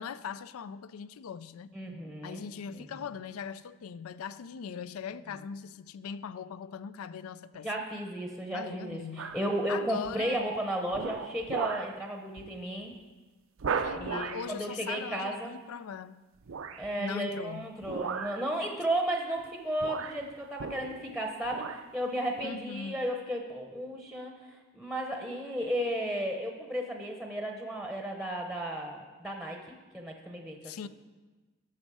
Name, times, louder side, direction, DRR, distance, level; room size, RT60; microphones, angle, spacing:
voice 1, 0.0-1.7 2.2-7.7 8.5-9.4 9.7-10.4 13.8-16.2 17.0-17.8 22.4-23.1 30.6-30.9, left 6 dB, 80° left, 16 dB, 0.4 m, -40 dB
voice 2, 1.7-2.4 2.7-2.9 7.6-12.9 13.9-15.6 16.8-29.6 29.9-30.6, right 1 dB, ahead, 2 dB, 0.8 m, -34 dB
sound 1, 9.2-9.5 10.0-10.4 10.9-12.0 12.4-12.6 12.9-13.0 13.6-14.5 16.4-16.9 17.8-18.5 19.4-19.5 19.8-21.2 21.4-21.9 22.4-22.5, right 6 dB, 65° right, 0.5 m, -36 dB
12.0 x 6.3 x 4.8 m, 1.2 s
head